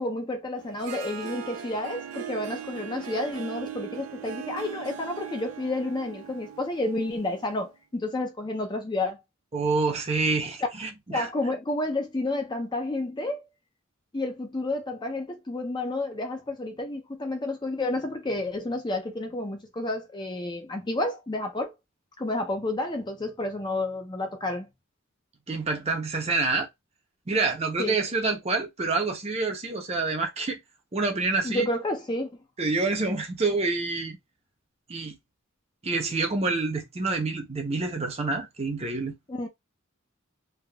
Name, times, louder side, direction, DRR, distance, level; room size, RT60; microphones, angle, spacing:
voice 1, 0.0-9.2 11.1-13.4 14.1-21.7 22.2-24.7 27.8-28.0 31.4-32.3 39.3-39.5, left 2 dB, 20° left, 0.5 m, -30 dB
Harp, 0.6-7.7, right 8 dB, 85° right, 0.4 m, -39 dB
voice 2, 9.5-11.3 25.5-26.7 27.3-30.6 30.9-31.7 32.6-34.2 34.9-35.2 35.8-39.1, right 3 dB, 30° right, 0.6 m, -27 dB
3.4 x 2.3 x 2.2 m
head